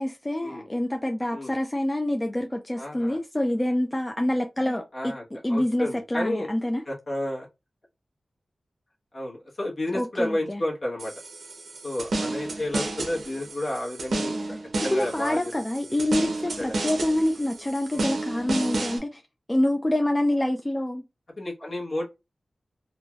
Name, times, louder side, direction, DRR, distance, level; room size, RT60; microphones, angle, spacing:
voice 1, 0.0-5.1 5.4-6.8 9.9-10.6 14.3-14.6 14.9-19.2 19.5-21.0, left 1 dB, 15° left, 0.4 m, -26 dB
voice 2, 2.8-3.2 4.9-5.2 5.5-6.5 6.9-7.5 9.1-11.1 11.8-14.3 14.8-15.5 15.9-16.0 16.6-17.0 17.9-18.1 21.4-22.2, left 1 dB, 50° left, 1.1 m, -31 dB
sound 1, 11.0-19.0, right 2 dB, 80° right, 0.7 m, -31 dB
3.1 x 2.5 x 2.3 m
wide cardioid pair, 100°, 0 cm